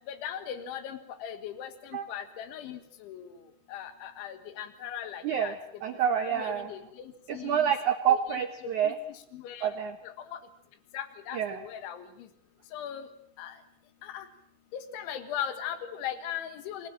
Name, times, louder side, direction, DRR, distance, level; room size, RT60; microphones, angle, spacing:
voice 1, 0.1-3.3 3.7-5.5 6.3-7.7 8.1-8.2 8.8-8.9 9.3-9.8 10.0-10.4 10.9-12.1 12.7-13.1 13.4-13.6 14.0-14.3 14.7-16.9, left 9 dB, 85° left, 10 dB, 4.0 m, -38 dB
voice 2, 5.2-5.5 5.8-6.7 7.3-9.0 9.6-9.9 11.3-11.6, right 8 dB, 80° right, 8 dB, 1.7 m, -27 dB
27.0 x 20.5 x 7.6 m, 0.72 s
omnidirectional pair, 5.3 m